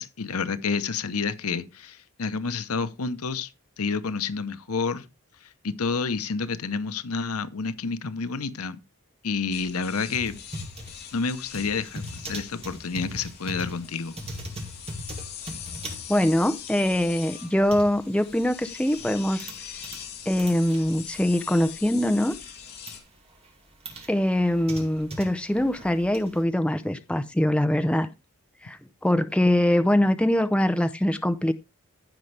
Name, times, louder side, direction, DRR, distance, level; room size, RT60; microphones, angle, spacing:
voice 1, 0.0-3.5 3.8-5.0 5.6-8.8 9.2-10.4 11.1-14.2, left 4 dB, 90° left, 0.8 m, -29 dB
sound 1, 9.5-23.0, left 9 dB, 50° left, 2.7 m, -42 dB
sound 2, 9.9-20.1 20.4-22.0 22.3-23.0 23.4-26.4, equal, 30° right, 2.4 m, -40 dB
voice 2, 16.1-19.5 20.3-22.4 24.1-28.1 28.6-31.5, left 1 dB, 5° left, 0.5 m, -23 dB
15.5 x 5.3 x 3.3 m
head